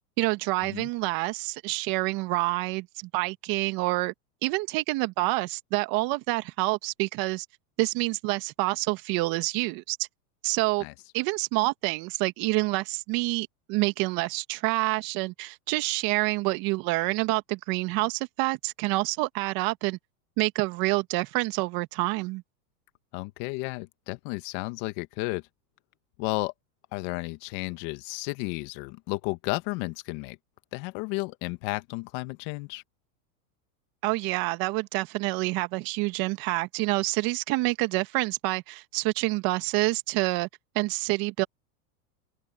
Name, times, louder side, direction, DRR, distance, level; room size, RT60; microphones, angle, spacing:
voice 1, 0.2-4.1 4.4-7.5 7.8-10.1 10.4-10.9 11.1-20.0 20.4-22.4 34.0-40.5 40.8-41.5, right 23 dB, 45° right, 1.8 m, -27 dB
voice 2, 23.1-25.4 26.2-26.5 26.9-30.4 30.7-32.8, left 24 dB, 50° left, 1.7 m, -33 dB
supercardioid pair, 125°, 47 cm